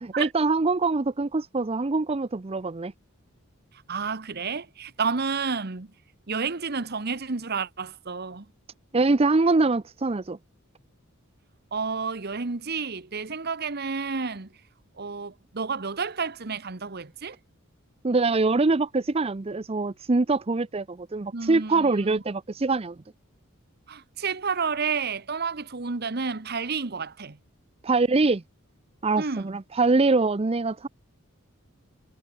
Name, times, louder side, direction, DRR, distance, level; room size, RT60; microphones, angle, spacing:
voice 1, 0.2-2.9 8.9-10.4 18.0-23.0 27.8-28.4 29.0-30.9, right 3 dB, 30° right, 0.5 m, -24 dB
voice 2, 3.9-5.9 6.3-8.5 11.7-14.5 15.0-17.4 21.3-22.2 23.9-27.4 29.2-29.6, right 5 dB, 50° right, 1.1 m, -30 dB
head